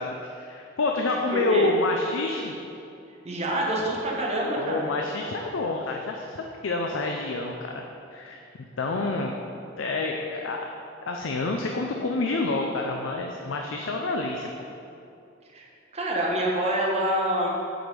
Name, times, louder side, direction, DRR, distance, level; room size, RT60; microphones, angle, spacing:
voice 1, 0.0-2.5 4.6-9.4 9.8-10.7 11.1-14.5, left 2 dB, 80° left, 1 dB, 0.5 m, -28 dB
voice 2, 1.3-1.7 3.2-4.9 15.5-17.5, right 1 dB, 35° right, -3 dB, 1.2 m, -26 dB
7.6 x 4.9 x 5.3 m, 2.6 s
head